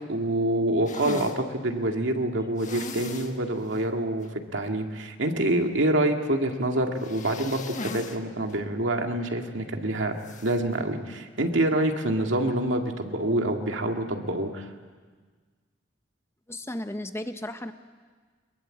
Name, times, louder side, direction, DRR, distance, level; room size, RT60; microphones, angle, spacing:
voice 1, 0.1-4.3 4.5-14.7, right 1 dB, 75° right, 3 dB, 2.1 m, -26 dB
sound 1, 0.9-1.4 2.6-3.4 3.7-3.8 4.2-4.3 7.0-8.2 8.5-8.6 10.2-10.6, left 2 dB, 40° left, 1.5 m, -37 dB
voice 2, 16.5-17.7, left 1 dB, 15° left, 8 dB, 0.8 m, -34 dB
23.0 x 22.0 x 7.7 m, 1.5 s
head